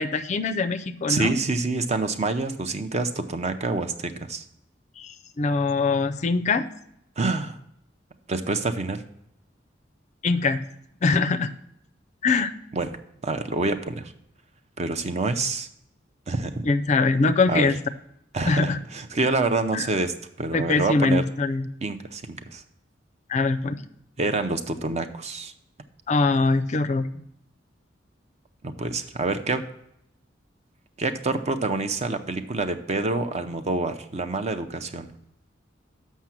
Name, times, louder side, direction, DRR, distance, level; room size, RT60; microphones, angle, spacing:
voice 1, 0.0-1.3 5.0-6.7 10.2-10.6 11.0-11.5 12.2-12.5 16.7-17.8 18.4-18.8 19.7-19.9 20.5-21.7 23.3-23.8 26.1-27.1, left 3 dB, 40° left, 10 dB, 0.4 m, -22 dB
voice 2, 1.1-4.4 7.2-7.6 8.3-9.0 12.7-12.9 13.2-14.1 14.8-15.7 16.3-16.7 17.5-17.7 18.3-21.2 21.8-22.6 24.2-25.5 28.6-29.6 31.0-35.1, right 3 dB, 35° right, 9 dB, 0.6 m, -27 dB
7.2 x 5.6 x 5.9 m, 0.75 s
head